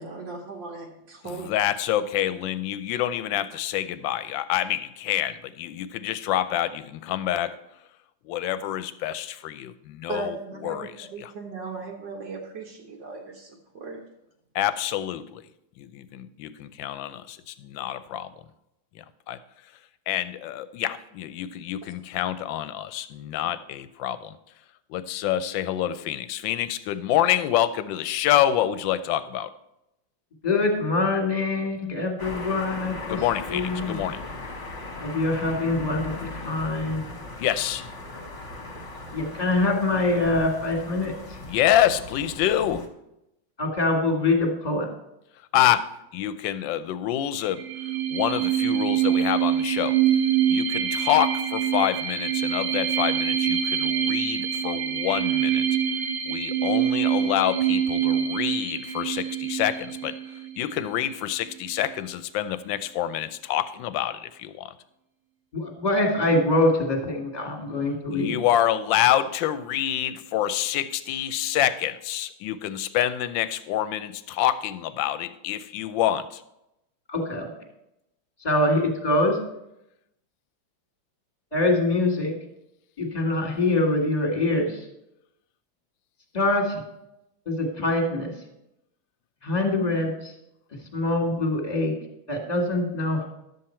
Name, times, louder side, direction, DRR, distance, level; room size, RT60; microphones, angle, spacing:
voice 1, 0.0-1.5 10.1-14.0, right 3 dB, 70° right, -2 dB, 1.8 m, -37 dB
voice 2, 1.2-7.6 8.2-10.4 10.6-11.3 14.5-15.5 15.8-18.3 18.9-19.4 20.1-24.4 24.9-29.5 33.1-34.2 37.4-37.9 41.5-42.9 45.5-47.6 48.1-50.0 50.5-55.7 56.3-64.7 68.1-76.4, left 12 dB, 80° left, 13 dB, 1.3 m, -27 dB
voice 3, 30.4-33.2 33.5-34.0 35.0-36.1 36.4-37.0 39.1-41.4 43.6-44.9 65.5-68.3 77.1-77.5 78.4-79.4 81.5-82.3 83.0-84.9 86.3-86.8 87.4-88.3 89.4-90.3 90.9-91.9 92.3-93.3, left 2 dB, 20° left, 2 dB, 1.7 m, -24 dB
sound 1, 32.2-42.9, left 2 dB, 40° left, 1.3 m, -38 dB
sound 2, 47.5-60.9, right 9 dB, 45° right, 0.9 m, -25 dB
11.5 x 7.7 x 4.4 m, 0.86 s
omnidirectional pair, 2.1 m